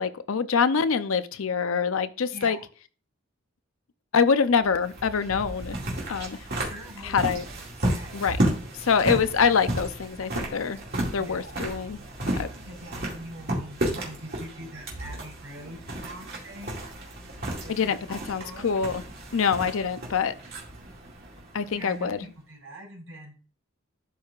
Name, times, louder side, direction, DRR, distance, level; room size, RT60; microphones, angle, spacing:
voice 1, 0.0-2.6 4.1-5.8 6.1-6.4 7.0-7.4 8.1-8.4 8.8-10.8 11.1-12.0 12.4-12.5 17.7-19.0 19.3-20.3 21.5-22.2, left 6 dB, 70° left, 12 dB, 0.5 m, -25 dB
voice 2, 2.3-2.6 6.6-7.6 7.9-8.3 11.2-11.6 12.3-16.8 17.6-18.7 21.7-23.3, right 1 dB, 65° right, -1 dB, 3.9 m, -44 dB
sound 1, 4.5-22.2, right 1 dB, 45° right, 2.2 m, -33 dB
12.0 x 4.7 x 2.4 m, 0.37 s
head